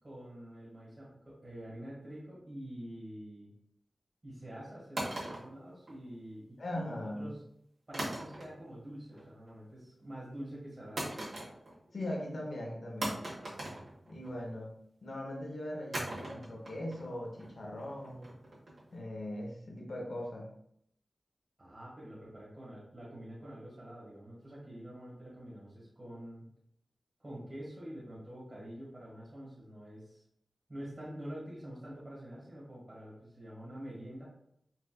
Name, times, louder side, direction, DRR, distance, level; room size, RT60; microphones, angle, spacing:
voice 1, 0.0-3.5 4.2-7.4 7.9-11.1 21.6-26.5 27.2-30.2 30.7-34.3, right 1 dB, 30° right, -7 dB, 1.4 m, -46 dB
sound 1, 5.0-6.4 7.9-8.8 9.1-9.5 11.0-11.9 12.2-12.3 13.0-14.5 15.9-18.9, right 1 dB, 75° right, 1.3 m, -41 dB
voice 2, 6.6-7.3 11.9-13.2 14.1-14.7 15.0-18.3 18.9-20.5, left 1 dB, 70° left, -1 dB, 0.8 m, -40 dB
4.3 x 2.4 x 2.2 m, 0.72 s
wide cardioid pair, 65°, 0 cm